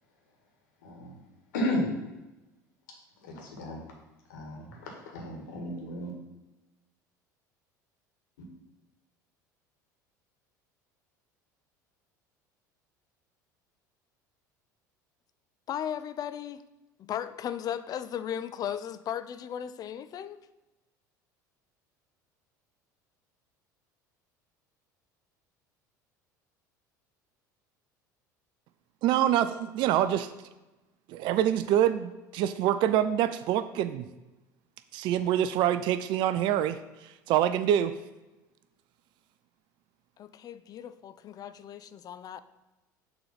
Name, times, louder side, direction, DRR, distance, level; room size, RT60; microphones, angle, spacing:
voice 1, 0.8-1.2 1.5-1.9 3.2-3.8 4.3-6.1, left 1 dB, 75° left, 0 dB, 1.6 m, -33 dB
voice 2, 15.7-16.6 17.0-20.5 40.2-42.4, left 9 dB, 40° left, 13 dB, 0.4 m, -36 dB
voice 3, 29.0-30.3 31.1-34.0 34.9-36.8 37.3-37.9, right 11 dB, 50° right, 11 dB, 0.4 m, -25 dB
6.8 x 3.3 x 5.6 m, 1.1 s
hypercardioid pair, 70°, 10 cm